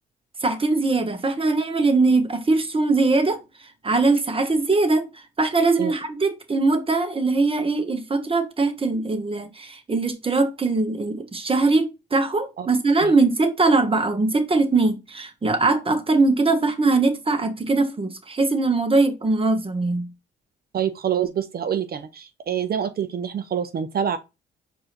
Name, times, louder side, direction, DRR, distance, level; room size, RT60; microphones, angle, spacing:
voice 1, 0.4-3.4 3.8-20.1, right 3 dB, 25° right, 1.0 m, -21 dB
voice 2, 20.7-24.2, right 8 dB, 50° right, 0.5 m, -26 dB
4.7 x 2.7 x 2.9 m
supercardioid pair, 65°, 21 cm